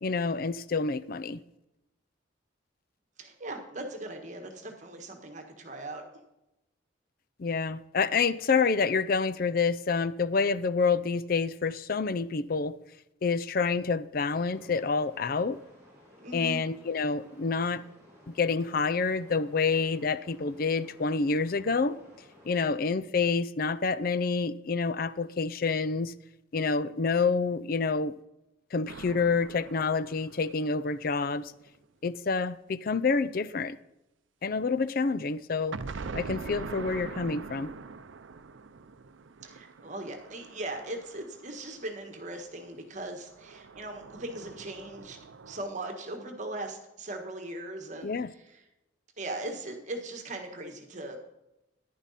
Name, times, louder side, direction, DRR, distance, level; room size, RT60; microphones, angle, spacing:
voice 1, 0.0-1.4 7.4-12.8 13.2-15.6 16.3-17.8 18.3-22.0 22.4-26.1 26.5-28.2 28.7-31.5 32.0-33.8 34.4-35.8 36.1-37.7 48.0-48.3, left 4 dB, 50° left, 0.5 m, -28 dB
voice 2, 3.2-6.0 16.2-16.6 39.4-45.2 45.5-48.2 49.2-51.2, right 2 dB, 40° right, 1.5 m, -39 dB
sound 1, 14.4-22.6, left 1 dB, 15° right, 4.7 m, -56 dB
sound 2, 28.9-31.7 35.7-42.0 43.2-45.7, right 4 dB, 80° right, 0.6 m, -43 dB
10.5 x 10.5 x 4.2 m
head